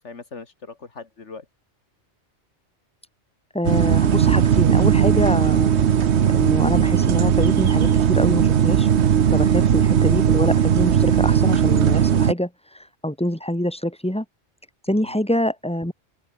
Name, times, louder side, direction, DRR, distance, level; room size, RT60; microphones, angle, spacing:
voice 1, 0.0-1.5 9.3-9.5 14.9-15.2, left 4 dB, 80° left, 2.5 m, -40 dB
voice 2, 3.5-5.8 6.3-8.9 9.3-14.3 14.9-15.9, left 1 dB, 5° left, 2.3 m, -25 dB
sound 1, 3.6-12.3, right 8 dB, 70° right, 1.2 m, -18 dB
open air
omnidirectional pair, 1.2 m